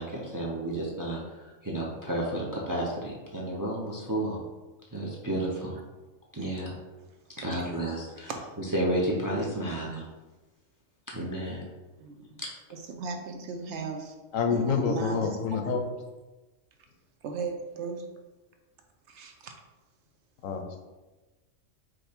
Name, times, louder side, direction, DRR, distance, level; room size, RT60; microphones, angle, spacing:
voice 1, 0.0-4.4 4.9-5.7 6.3-6.8 7.4-8.3 8.6-10.0 11.1-11.6, right 1 dB, 30° right, -3 dB, 0.4 m, -31 dB
voice 2, 12.0-12.4 12.7-14.2 14.5-15.7 17.2-18.1 19.1-19.5, right 5 dB, 65° right, 4 dB, 0.8 m, -37 dB
voice 3, 14.3-15.8 20.4-20.8, left 6 dB, 80° left, 4 dB, 1.0 m, -27 dB
5.1 x 2.2 x 4.2 m, 1.2 s
omnidirectional pair, 1.4 m